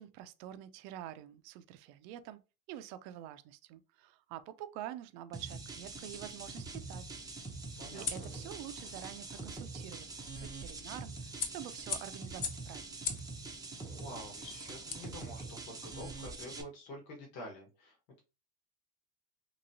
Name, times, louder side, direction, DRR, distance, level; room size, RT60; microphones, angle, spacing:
voice 1, 0.0-2.4 2.7-7.1 7.9-13.1, right 12 dB, 75° right, 0.6 m, -47 dB
sound 1, 5.3-16.6, right 3 dB, 10° right, 0.6 m, -45 dB
sound 2, 5.8-15.7, left 6 dB, 40° left, 0.8 m, -45 dB
voice 2, 7.8-8.3 13.8-18.2, left 1 dB, 85° left, 1.4 m, -48 dB
3.0 x 2.9 x 2.7 m
supercardioid pair, 105°, 50 cm